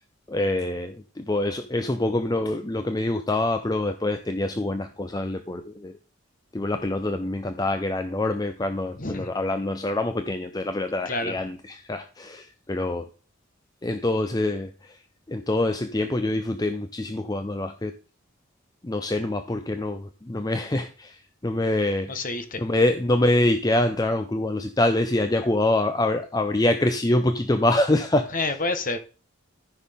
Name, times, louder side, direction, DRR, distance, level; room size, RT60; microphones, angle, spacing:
voice 1, 0.3-6.0 6.5-13.1 13.8-15.0 15.3-17.9 18.8-22.3 22.6-28.3, left 1 dB, 20° left, 0.5 m, -25 dB
voice 2, 9.0-9.3 11.0-11.3 22.1-22.6 28.3-29.0, left 3 dB, 40° left, 1.1 m, -28 dB
14.0 x 5.8 x 3.5 m
head